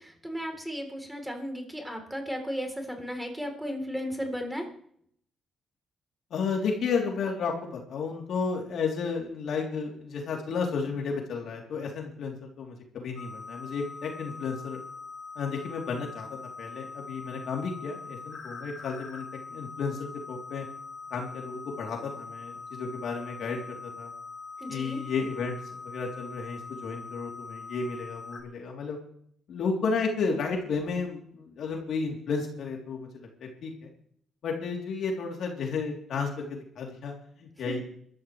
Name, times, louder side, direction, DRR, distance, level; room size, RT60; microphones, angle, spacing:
voice 1, 0.0-4.7 24.6-25.0 37.7-37.8, equal, 5° right, 3 dB, 3.5 m, -35 dB
voice 2, 6.3-14.8 15.3-16.3 16.6-19.2 19.5-20.6 21.1-24.1 24.7-25.5 25.8-29.0 29.5-33.9 34.4-37.8, left 5 dB, 70° left, 0 dB, 3.2 m, -32 dB
sound 1, 13.2-28.4, left 4 dB, 45° left, 4.9 m, -43 dB
21.0 x 13.5 x 3.3 m, 0.64 s
cardioid pair, 90°, 0 cm